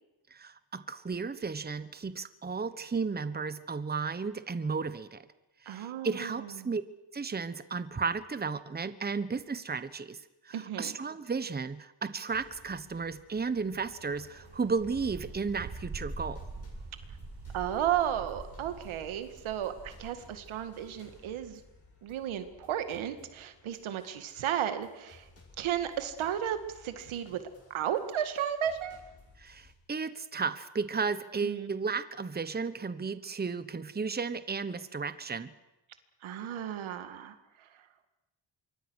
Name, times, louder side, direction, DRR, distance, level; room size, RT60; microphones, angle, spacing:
voice 1, 0.3-5.2 5.6-6.8 7.1-16.5 29.4-35.5, right 5 dB, 20° right, 13 dB, 1.2 m, -34 dB
voice 2, 5.7-6.7 10.5-10.9 17.5-21.6 22.0-25.3 25.6-27.4 27.7-29.0 31.4-31.7 36.2-37.8, right 10 dB, 90° right, 9 dB, 2.0 m, -34 dB
sound 1, 12.3-29.7, left 2 dB, 30° left, 7.7 m, -59 dB
sound 2, 13.8-21.2, right 3 dB, 55° right, 7.7 m, -45 dB
26.0 x 23.5 x 6.4 m, 0.96 s
cardioid pair, 90°, 47 cm